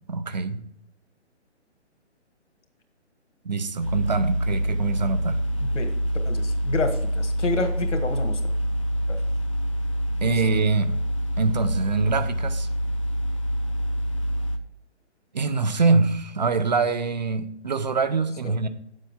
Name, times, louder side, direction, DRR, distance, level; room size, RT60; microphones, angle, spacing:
voice 1, 0.1-0.6 3.4-5.4 10.2-11.0 11.4-12.7 15.3-18.7, right 4 dB, 40° right, 0.6 m, -24 dB
sound 1, 3.8-14.6, equal, 30° left, 0.5 m, -26 dB
voice 2, 5.6-5.9 6.2-8.4 9.1-9.2 10.2-10.6 18.4-18.7, left 3 dB, 80° left, 1.8 m, -30 dB
9.1 x 7.4 x 3.6 m
hypercardioid pair, 170°, 35 cm